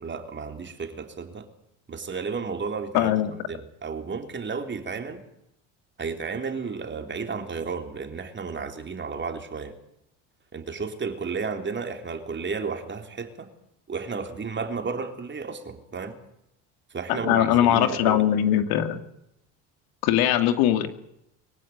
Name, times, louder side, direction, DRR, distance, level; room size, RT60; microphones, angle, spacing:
voice 1, 0.0-1.5 1.9-3.2 3.5-5.2 6.0-9.7 10.5-13.5 13.9-16.2 16.9-18.2, right 5 dB, 30° right, 5 dB, 3.6 m, -33 dB
voice 2, 2.9-3.3 17.1-19.0 20.0-20.9, left 11 dB, 75° left, 8 dB, 2.5 m, -21 dB
23.5 x 16.0 x 9.5 m, 0.79 s
supercardioid pair, 95°, 37 cm